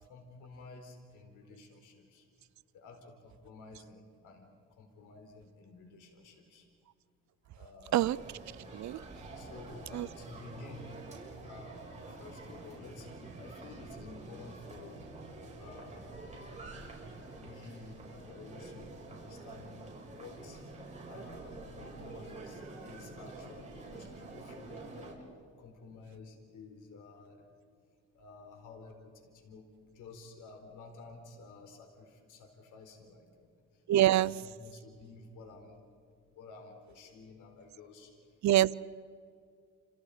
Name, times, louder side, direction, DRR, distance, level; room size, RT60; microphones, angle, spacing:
voice 1, 0.1-2.2 2.7-4.5 4.8-6.6 7.5-8.0 9.4-10.9 11.4-15.0 15.6-16.1 17.3-19.8 20.1-20.6 21.0-25.3 25.6-27.5 28.1-29.7 29.9-33.5 34.1-35.8 36.3-38.1, left 3 dB, 85° left, 4 dB, 4.4 m, -52 dB
sound 1, 8.0-25.1, right 2 dB, 25° right, 6.8 m, -47 dB
voice 2, 33.9-34.3 38.4-38.7, right 13 dB, 65° right, 19 dB, 0.6 m, -25 dB
29.5 x 28.5 x 5.0 m, 2.2 s
cardioid pair, 90°, 30 cm